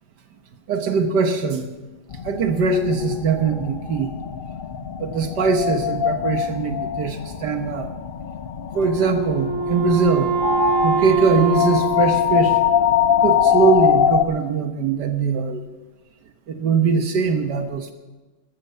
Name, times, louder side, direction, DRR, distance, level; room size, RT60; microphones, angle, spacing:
voice 1, 0.7-1.7 2.2-4.1 5.0-7.9 8.7-10.3 10.8-12.6 13.2-15.6 16.5-17.9, right 5 dB, 70° right, 7 dB, 1.7 m, -21 dB
sound 1, 2.1-14.2, left 9 dB, 75° left, 0.5 m, -23 dB
Wind instrument woodwind instrument, 8.7-13.2, right 6 dB, 85° right, 5.1 m, -25 dB
15.0 x 13.5 x 5.6 m, 1.2 s
omnidirectional pair, 1.9 m